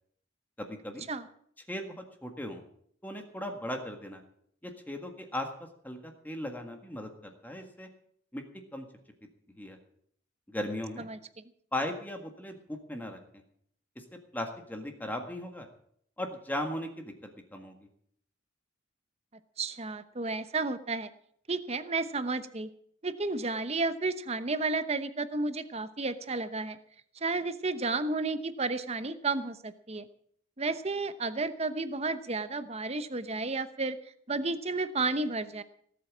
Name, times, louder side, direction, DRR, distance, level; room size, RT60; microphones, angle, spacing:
voice 1, 0.6-1.1 1.7-2.6 3.0-4.2 4.6-7.9 8.3-8.4 8.7-8.8 9.6-9.8 10.5-11.1 11.7-13.4 13.9-14.0 14.3-15.7 16.2-17.7, left 1 dB, 10° left, 4 dB, 1.7 m, -37 dB
voice 2, 19.6-21.1 21.5-22.7 23.0-26.8 27.2-30.1 30.6-34.0 34.3-35.6, right 3 dB, 35° right, 12 dB, 0.9 m, -32 dB
18.0 x 8.3 x 7.4 m, 0.66 s
head